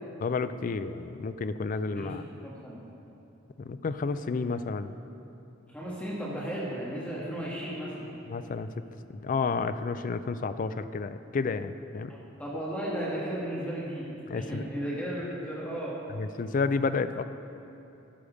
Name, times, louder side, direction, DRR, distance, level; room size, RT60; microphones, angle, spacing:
voice 1, 0.2-2.2 3.6-4.9 8.3-8.8 9.1-12.1 14.3-14.6 16.1-17.2, left 4 dB, 40° left, 12 dB, 0.4 m, -31 dB
voice 2, 2.4-2.8 5.7-8.1 12.1-14.1 14.3-15.9, equal, 5° left, -7 dB, 1.5 m, -34 dB
13.0 x 6.8 x 5.0 m, 2.9 s
head